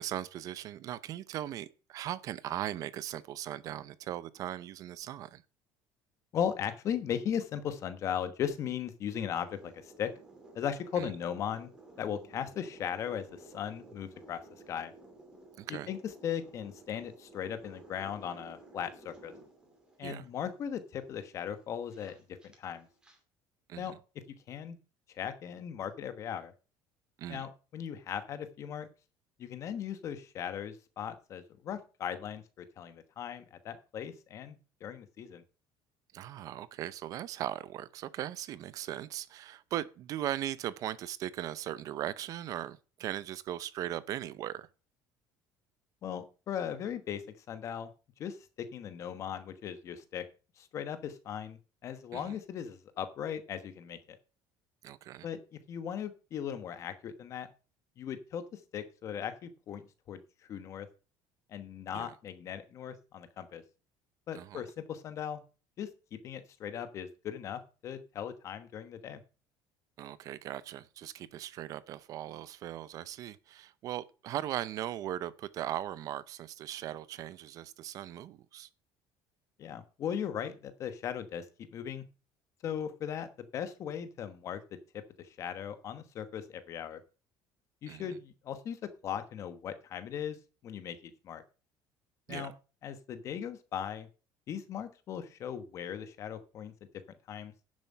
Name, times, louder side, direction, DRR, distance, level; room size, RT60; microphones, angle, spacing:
voice 1, 0.0-5.4 11.0-11.1 15.6-15.9 20.0-20.2 23.7-24.0 27.2-27.5 36.1-44.7 52.1-52.4 54.8-55.3 61.9-62.1 64.3-64.7 70.0-78.7 87.9-88.2 92.3-92.5, right 12 dB, 45° right, 0.5 m, -39 dB
voice 2, 6.3-10.1 10.5-11.7 12.0-14.4 14.7-14.9 15.7-16.0 16.2-19.3 20.0-22.1 22.4-22.9 23.8-23.9 24.5-24.8 25.1-26.5 27.3-28.9 29.4-35.4 46.0-47.2 47.5-47.9 48.2-50.2 50.6-54.2 55.2-57.5 58.0-60.2 60.5-60.9 61.5-63.6 64.3-65.4 65.8-65.9 66.2-69.2 79.6-81.5 81.7-82.0 82.6-84.6 85.2-87.0 87.8-90.4 90.6-91.4 92.3-92.5 92.8-94.1 94.5-96.7 97.3-97.5, left 8 dB, 35° left, 1.2 m, -38 dB
sound 1, 9.4-23.2, right 2 dB, 10° right, 2.7 m, -55 dB
10.5 x 7.4 x 5.5 m
cardioid pair, 175°, 9 cm